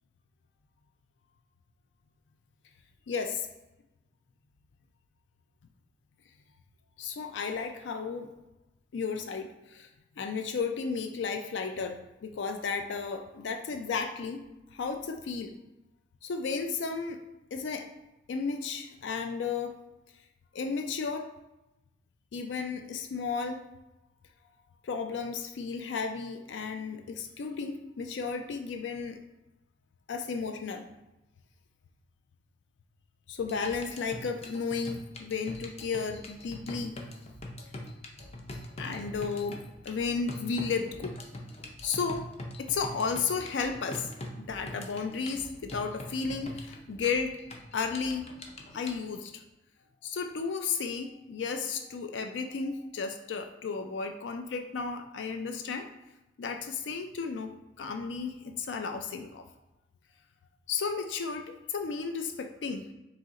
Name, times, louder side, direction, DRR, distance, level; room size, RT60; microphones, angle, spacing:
voice 1, 3.1-3.5 7.0-8.3 8.9-9.9 10.2-14.4 14.7-15.5 16.2-17.2 17.5-17.9 18.3-19.7 20.5-21.3 22.3-23.6 24.8-29.2 30.1-30.8 33.3-37.0 38.8-39.6 39.8-41.1 41.8-42.3 42.7-44.1 44.4-47.4 47.7-48.3 48.7-49.3 50.0-55.9 56.4-57.5 57.8-59.4 60.7-62.8, left 5 dB, 90° left, 6 dB, 0.4 m, -33 dB
sound 1, 33.4-49.0, left 1 dB, 35° left, 0.5 m, -43 dB
4.2 x 2.9 x 3.6 m, 0.97 s
head